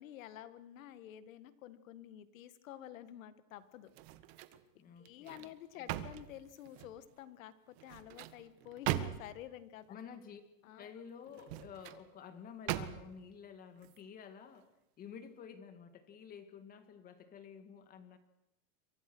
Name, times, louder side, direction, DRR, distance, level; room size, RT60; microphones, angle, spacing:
voice 1, 0.0-3.9 5.0-9.9 10.6-11.0, left 12 dB, 70° left, 12 dB, 2.0 m, -50 dB
sound 1, 3.9-4.6 5.1-7.0 7.8-9.5 11.3-12.0 12.7-13.3 13.8-14.0, right 14 dB, 50° right, 1.5 m, -40 dB
voice 2, 4.8-5.9 9.9-10.4 10.8-14.7 15.0-18.2, left 7 dB, 20° left, 9 dB, 2.0 m, -51 dB
28.5 x 24.0 x 6.3 m, 0.84 s
supercardioid pair, 175°, 41 cm